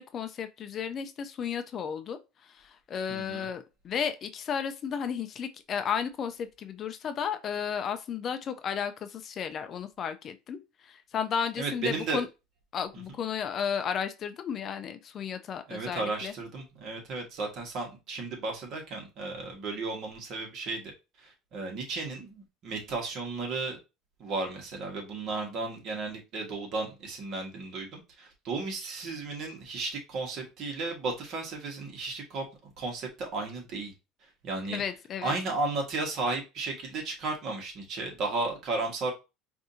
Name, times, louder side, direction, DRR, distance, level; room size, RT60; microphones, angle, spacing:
voice 1, 0.0-12.3 12.7-16.3 34.7-35.3, left 7 dB, 40° left, 0.4 m, -33 dB
voice 2, 3.1-3.5 11.6-12.2 15.7-20.8 21.2-23.8 24.2-32.5 32.8-33.9 34.4-34.8 35.2-39.1, right 3 dB, 50° right, 1.5 m, -34 dB
4.8 x 2.6 x 2.7 m
cardioid pair, 130°, 0 cm